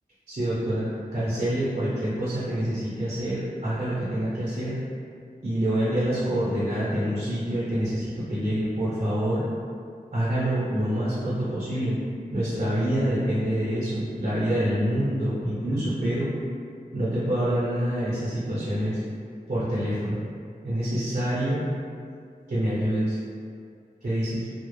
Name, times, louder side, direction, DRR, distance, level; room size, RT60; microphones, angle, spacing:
voice 1, 0.3-4.8 5.4-9.5 10.1-12.0 12.3-16.3 16.9-19.0 19.5-20.2 20.6-21.7 22.5-23.2 24.0-24.5, equal, 55° right, -10 dB, 0.7 m, -26 dB
2.0 x 2.0 x 3.0 m, 2.3 s
wide cardioid pair, 80°, 16 cm